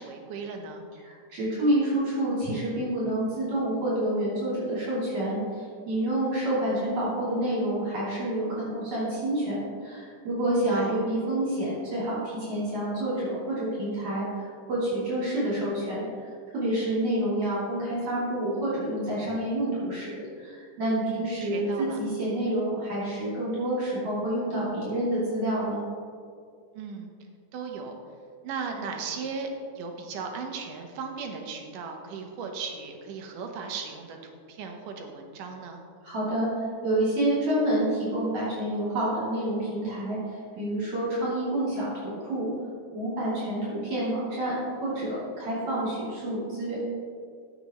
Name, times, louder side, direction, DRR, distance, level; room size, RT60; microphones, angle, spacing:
voice 1, 0.0-0.8 10.7-10.9 21.1-22.0 26.8-27.1 27.5-28.0 28.4-29.5 29.8-35.8, right 5 dB, 85° right, 3 dB, 2.6 m, -37 dB
voice 2, 1.0-25.8 36.0-42.5 42.9-46.8, right 1 dB, 60° right, -9 dB, 4.0 m, -28 dB
15.5 x 6.7 x 3.1 m, 2.2 s
omnidirectional pair, 3.6 m